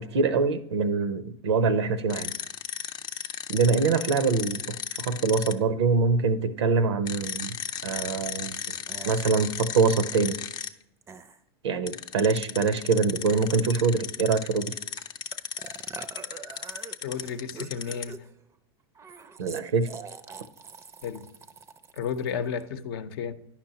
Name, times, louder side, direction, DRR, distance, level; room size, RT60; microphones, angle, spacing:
voice 1, 0.0-2.3 3.5-7.6 7.8-8.6 9.0-10.4 11.6-14.7 19.4-19.9, right 4 dB, 85° right, 0.6 m, -24 dB
sound 1, 2.1-5.5 7.1-10.7 11.9-18.1, left 7 dB, 30° left, 0.5 m, -35 dB
sound 2, 7.2-7.3 8.6-8.7 8.9-9.4 11.0-11.4 13.3-13.8 15.0-15.1 15.3-18.4 19.0-22.7, right 5 dB, 20° right, 0.4 m, -44 dB
voice 2, 17.0-18.2 21.0-21.3 21.9-23.3, left 7 dB, 65° left, 0.7 m, -32 dB
9.7 x 5.9 x 2.8 m
hypercardioid pair, 105°, 14 cm